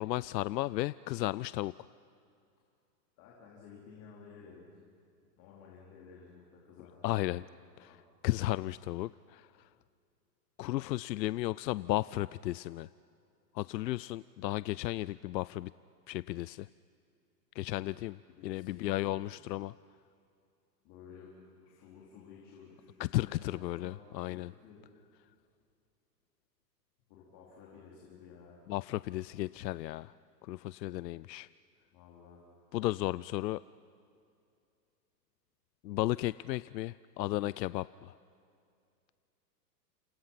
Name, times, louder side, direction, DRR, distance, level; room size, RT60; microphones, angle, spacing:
voice 1, 0.0-1.7 7.0-7.4 7.8-8.0 8.2-9.7 10.6-12.9 13.5-15.7 16.1-16.7 17.6-19.7 23.0-24.5 28.7-30.1 30.4-31.5 32.7-33.6 35.8-38.1, left 16 dB, 85° left, 18 dB, 0.6 m, -34 dB
voice 2, 3.2-4.7 5.4-8.0 17.7-18.0 18.4-19.2 20.8-21.3 21.6-24.8 27.1-28.6 31.9-32.5, left 6 dB, 35° left, -4 dB, 4.5 m, -54 dB
29.0 x 27.5 x 5.9 m, 2.5 s
hypercardioid pair, 150°, 49 cm